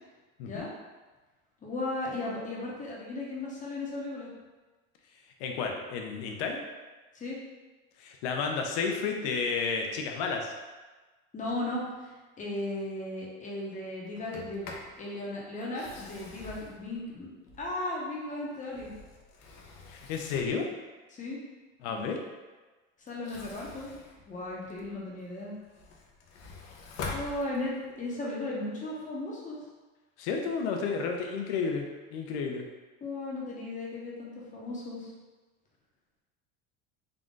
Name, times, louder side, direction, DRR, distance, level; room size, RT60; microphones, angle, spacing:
voice 1, 0.4-0.8 1.6-4.3 7.1-7.4 11.3-12.1 12.4-14.7 15.0-17.3 17.6-18.9 21.1-21.4 21.9-22.0 23.0-23.9 24.3-25.5 27.1-29.6 33.0-35.1, left 2 dB, 25° left, -4 dB, 0.9 m, -36 dB
voice 2, 5.4-6.6 8.0-10.5 19.9-20.7 21.8-22.2 30.2-32.7, left 5 dB, 85° left, 2 dB, 0.7 m, -31 dB
Sliding door, 14.2-15.0 15.6-18.0 18.5-20.7 23.1-25.0 25.5-28.0, left 3 dB, 55° left, 0.7 m, -44 dB
3.8 x 2.4 x 3.7 m, 1.3 s
cardioid pair, 135°, 32 cm